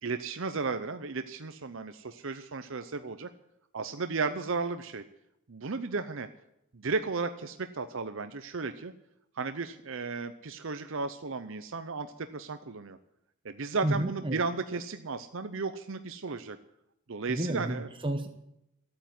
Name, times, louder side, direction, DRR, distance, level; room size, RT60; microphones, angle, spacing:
voice 1, 0.0-3.3 3.7-5.0 5.5-6.3 6.7-8.9 9.4-13.0 13.4-16.6 17.1-17.9, right 4 dB, 60° right, 9 dB, 0.7 m, -34 dB
voice 2, 13.8-14.4 17.3-18.3, right 1 dB, 25° right, 6 dB, 1.0 m, -31 dB
14.5 x 8.9 x 9.3 m, 0.81 s
head